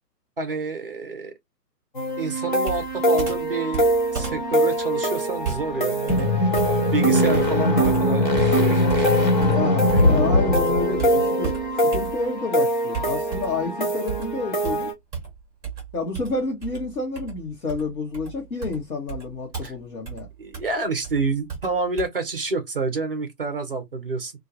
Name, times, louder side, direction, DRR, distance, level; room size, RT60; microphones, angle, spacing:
voice 1, 0.4-1.3 2.2-6.3 6.9-9.3 9.9-10.0 19.6-19.7 20.4-24.3, right 3 dB, 35° right, 0.5 m, -28 dB
sound 1, 1.9-14.9, right 1 dB, 30° left, 0.5 m, -25 dB
Computer keyboard, 2.6-10.2 10.5-12.4 12.9-13.7 14.1-22.1, right 7 dB, 5° right, 0.9 m, -35 dB
sound 2, 6.0-11.6, left 2 dB, 85° left, 1.1 m, -21 dB
voice 2, 9.4-14.9 15.9-20.3, left 3 dB, 60° left, 0.9 m, -29 dB
2.2 x 2.2 x 2.6 m
figure-of-eight pair, 135°, 49 cm